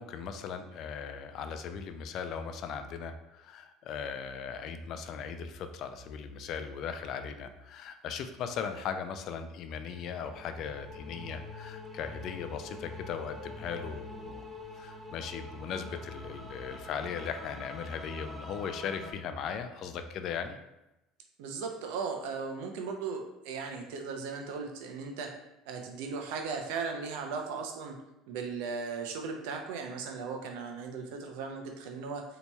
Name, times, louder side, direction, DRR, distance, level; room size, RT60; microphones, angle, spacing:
voice 1, 0.0-14.4 14.8-20.6, left 6 dB, 55° left, 8 dB, 0.3 m, -38 dB
sound 1, 9.7-19.1, left 2 dB, 10° right, 0.8 m, -45 dB
voice 2, 21.4-25.3 25.7-28.0 28.3-32.2, right 5 dB, 80° right, 3 dB, 0.5 m, -37 dB
4.1 x 2.8 x 2.3 m, 0.94 s
supercardioid pair, 105°, 0 cm